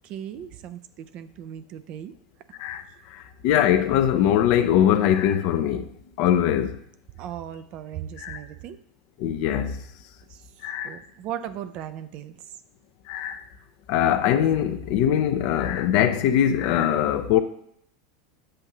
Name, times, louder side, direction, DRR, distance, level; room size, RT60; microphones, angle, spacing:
voice 1, 0.0-2.1 2.9-3.0 7.2-8.8 10.3-10.4 10.8-12.4, right 10 dB, 45° right, 0.4 m, -37 dB
voice 2, 3.1-5.9 6.2-6.8 8.2-8.4 9.2-9.8 10.6-11.0 13.1-13.4 13.9-17.4, left 10 dB, 50° left, 0.5 m, -22 dB
7.6 x 2.6 x 5.8 m
figure-of-eight pair, 85°, 3 cm